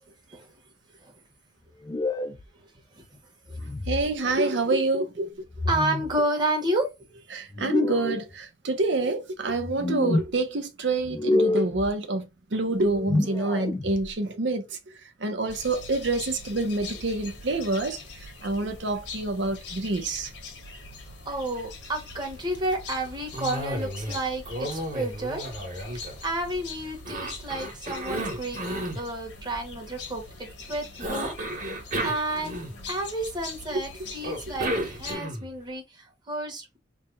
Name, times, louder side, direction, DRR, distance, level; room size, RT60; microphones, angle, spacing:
sound 1, 1.8-2.4 3.5-4.1 5.5-6.2 7.5-8.2 9.5-10.3 11.0-11.9 12.9-14.1, left 2 dB, 20° left, 0.4 m, -27 dB
voice 1, 3.9-5.3 7.3-20.3 33.7-33.9 34.5-34.7, right 2 dB, 80° right, 0.8 m, -27 dB
voice 2, 5.6-7.2 21.2-25.4 26.2-28.6 28.9-32.6 32.9-36.8, right 1 dB, 25° right, 1.1 m, -31 dB
sound 2, 15.5-35.1, left 3 dB, 80° left, 1.3 m, -42 dB
Cough, 23.3-24.2 24.5-26.5 27.1-29.0 31.0-33.0 34.2-35.5, right 1 dB, 45° right, 1.4 m, -32 dB
3.3 x 2.2 x 4.0 m
head